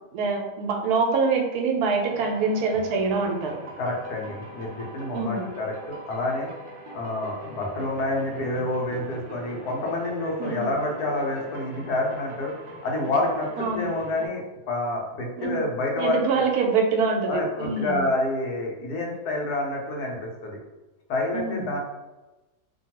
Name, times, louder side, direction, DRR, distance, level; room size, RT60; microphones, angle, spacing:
voice 1, 0.1-3.6 5.1-5.5 10.4-10.7 13.6-13.9 15.4-15.6 16.0-18.0 21.3-21.7, right 4 dB, 85° right, 2 dB, 1.1 m, -25 dB
sound 1, 2.0-14.3, equal, 50° right, 0.6 m, -42 dB
voice 2, 3.8-6.5 6.9-12.5 12.8-14.4 14.7-16.4 17.3-20.6 21.1-21.8, left 2 dB, 85° left, 0 dB, 1.2 m, -28 dB
2.9 x 2.3 x 2.8 m, 1.1 s
omnidirectional pair, 1.6 m